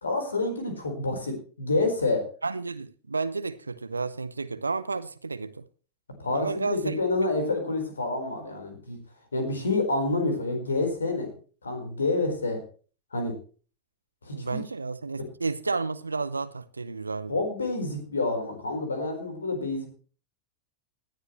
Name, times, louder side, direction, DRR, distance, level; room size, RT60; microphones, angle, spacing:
voice 1, 0.0-2.3 6.2-9.0 9.3-11.3 11.6-12.6 13.1-13.3 14.2-14.6 17.3-19.9, left 2 dB, 75° left, 4.3 m, -28 dB
voice 2, 2.4-5.7 6.3-7.0 14.3-17.4, right 4 dB, 80° right, 0.7 m, -31 dB
18.5 x 10.5 x 3.1 m
figure-of-eight pair, 90°, 0 cm